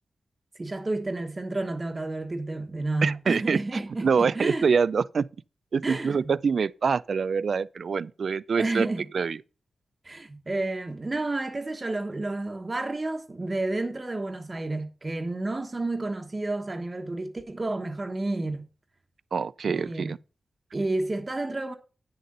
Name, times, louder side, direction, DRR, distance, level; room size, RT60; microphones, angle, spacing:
voice 1, 0.6-4.7 5.8-6.3 8.6-9.1 10.0-18.7 19.7-20.2 20.7-21.7, right 2 dB, 30° right, 1.2 m, -30 dB
voice 2, 3.0-3.6 4.0-5.3 5.7-8.9 9.1-9.4 19.3-20.2, right 5 dB, 65° right, 0.3 m, -25 dB
9.2 x 6.5 x 5.4 m
wide cardioid pair, 90°, 0 cm